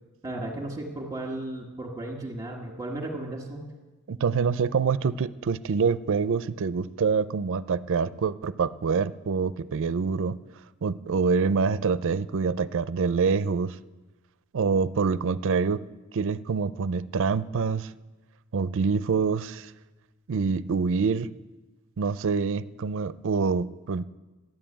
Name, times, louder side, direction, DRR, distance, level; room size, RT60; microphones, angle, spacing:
voice 1, 0.2-3.7, right 1 dB, 15° right, -2 dB, 1.8 m, -35 dB
voice 2, 4.1-10.4 10.8-13.8 14.5-15.8 16.1-17.9 18.5-19.7 20.3-21.3 22.0-24.0, right 5 dB, 60° right, 16 dB, 0.4 m, -26 dB
12.5 x 9.2 x 8.7 m, 1.2 s
head